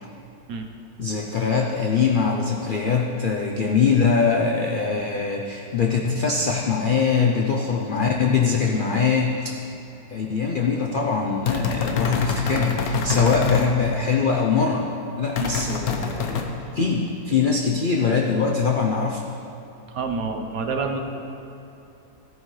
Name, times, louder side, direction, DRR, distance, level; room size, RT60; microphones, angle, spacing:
voice 1, 1.0-9.6 10.1-14.9 15.2-19.2, left 5 dB, 90° left, 0 dB, 0.4 m, -22 dB
sound 1, 11.5-13.7 15.4-16.4, left 5 dB, 65° left, 1.2 m, -25 dB
voice 2, 19.9-21.0, right 4 dB, 65° right, 3 dB, 1.1 m, -27 dB
13.5 x 9.3 x 3.2 m, 2.9 s
omnidirectional pair, 1.8 m